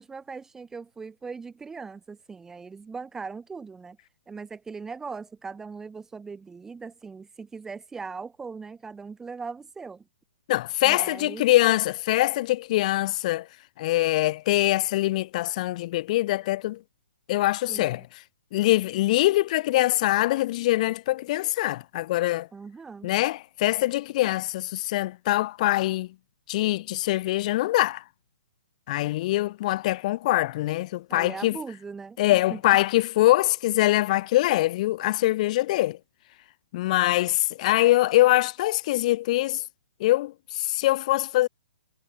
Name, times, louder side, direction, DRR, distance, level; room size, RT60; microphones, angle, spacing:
voice 1, 0.0-4.0 4.3-10.0 10.8-11.4 17.7-18.0 22.5-23.1 31.1-32.6, right 5 dB, 10° right, 0.7 m, -39 dB
voice 2, 10.5-13.5 13.8-16.8 17.3-18.0 18.5-22.5 23.0-26.1 26.5-28.0 28.9-31.6 32.2-36.0 36.7-39.6 40.0-41.5, left 16 dB, 40° left, 0.9 m, -23 dB
hypercardioid pair, 150°, 6 cm